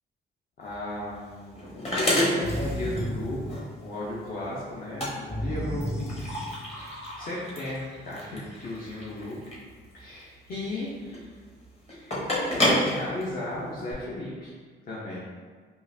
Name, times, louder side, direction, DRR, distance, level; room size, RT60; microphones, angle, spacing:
voice 1, 0.6-5.9 6.6-9.4 9.9-11.3 11.9-12.2 12.6-14.5 14.9-15.3, left 1 dB, 45° left, -6 dB, 0.7 m, -35 dB
sound 1, 0.6-13.9, left 1 dB, 30° left, 1.1 m, -31 dB
sound 2, 2.4-4.2 5.3-7.0, equal, 15° left, 0.4 m, -33 dB
3.8 x 2.4 x 2.7 m, 1.5 s
cardioid pair, 90°, 20 cm